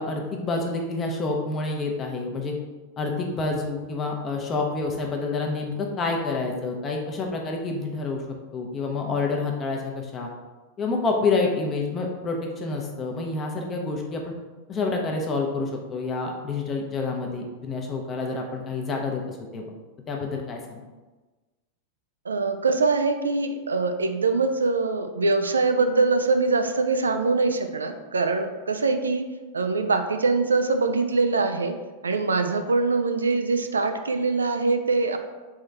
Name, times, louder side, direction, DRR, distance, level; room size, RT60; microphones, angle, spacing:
voice 1, 0.0-2.5 3.0-8.2 8.5-10.3 10.8-14.2 14.7-19.7 20.1-20.8, left 3 dB, 25° left, 1 dB, 0.8 m, -28 dB
voice 2, 22.3-29.3 29.5-31.7 32.0-35.2, right 3 dB, 75° right, 7 dB, 0.3 m, -23 dB
4.2 x 3.6 x 3.3 m, 1.2 s
figure-of-eight pair, 90°, 0 cm